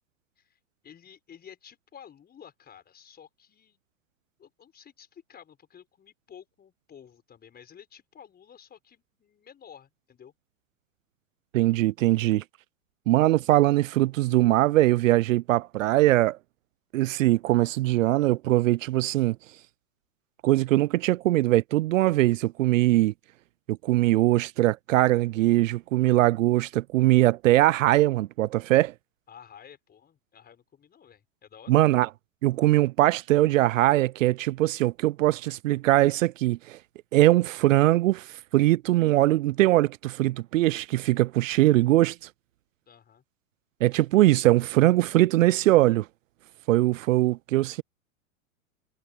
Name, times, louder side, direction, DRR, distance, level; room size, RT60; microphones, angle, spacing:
voice 1, 0.4-3.8 4.4-10.3 29.3-31.8 42.9-43.2, left 8 dB, 25° left, 5.8 m, -51 dB
voice 2, 11.5-12.4 13.1-16.4 16.9-19.4 20.4-23.1 23.7-28.9 31.7-32.1 32.4-36.8 37.1-42.2 43.8-46.1 46.7-47.8, right 16 dB, 70° right, 0.6 m, -21 dB
hypercardioid pair, 115°, 40 cm